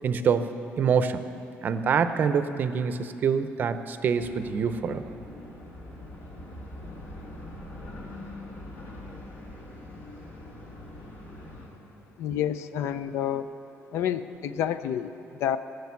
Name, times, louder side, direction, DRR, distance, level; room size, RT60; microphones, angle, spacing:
voice 1, 0.0-0.5 0.8-1.2 1.6-5.0, right 6 dB, 45° right, 10 dB, 0.6 m, -25 dB
sound 1, 4.2-11.7, left 1 dB, 50° left, 2.2 m, -43 dB
voice 2, 12.2-13.5 13.9-15.6, left 9 dB, 80° left, 12 dB, 0.5 m, -29 dB
15.0 x 6.5 x 8.3 m, 2.8 s
cardioid pair, 150°, 5 cm